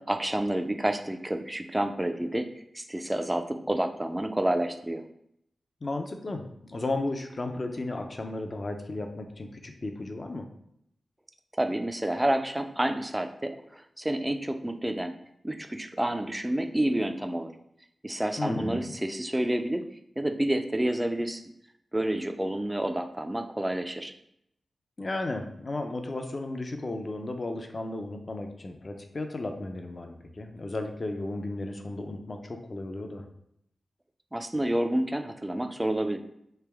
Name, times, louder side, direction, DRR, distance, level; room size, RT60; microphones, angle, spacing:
voice 1, 0.1-2.5 2.7-5.0 11.6-15.1 15.4-17.5 18.0-19.8 20.2-21.4 21.9-24.1 34.3-36.2, right 1 dB, 15° right, 7 dB, 0.4 m, -29 dB
voice 2, 5.8-6.4 6.7-10.4 18.4-18.9 25.0-33.2, left 2 dB, 40° left, 5 dB, 0.5 m, -34 dB
3.3 x 2.9 x 3.4 m, 0.75 s
wide cardioid pair, 85°, 0 cm